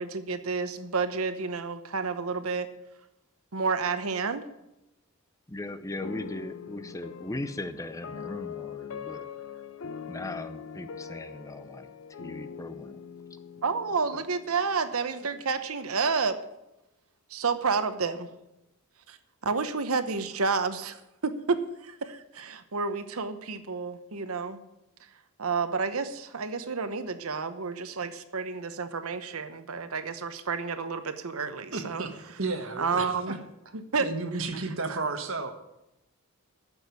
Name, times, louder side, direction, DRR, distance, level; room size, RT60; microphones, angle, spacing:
voice 1, 0.0-2.7 3.5-4.4 13.6-16.4 17.3-18.3 19.1-19.2 19.4-24.6 25.4-32.0 32.8-33.4 33.9-34.1 34.9-35.0, right 4 dB, 80° right, 10 dB, 0.9 m, -30 dB
voice 2, 5.5-9.3 10.1-11.9 12.2-13.0, left 2 dB, 15° left, 11 dB, 0.6 m, -38 dB
sound 1, 6.0-15.2, left 7 dB, 70° left, 0.6 m, -42 dB
voice 3, 31.7-33.4 33.6-33.7 34.0-35.5, right 3 dB, 65° right, 6 dB, 1.6 m, -33 dB
10.5 x 7.2 x 9.5 m, 0.91 s
head